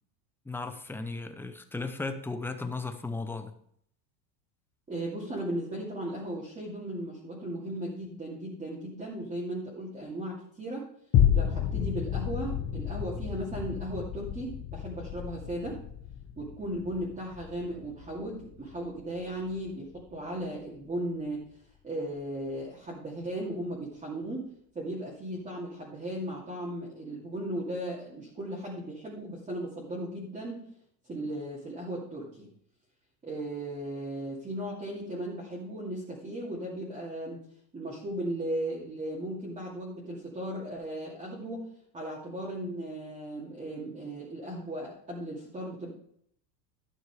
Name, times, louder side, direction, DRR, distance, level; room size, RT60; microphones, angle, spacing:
voice 1, 0.5-3.5, left 3 dB, 5° left, 8 dB, 0.5 m, -36 dB
voice 2, 4.9-10.9 11.3-15.8 16.4-21.4 21.8-24.5 24.7-30.6 31.0-32.5 33.2-37.4 37.7-41.7 41.9-45.9, right 1 dB, 15° right, -5 dB, 2.5 m, -36 dB
sound 1, 11.1-19.7 20.2-20.3, left 9 dB, 35° left, 1.1 m, -31 dB
12.5 x 6.4 x 4.8 m, 0.66 s
supercardioid pair, 140°, 50 cm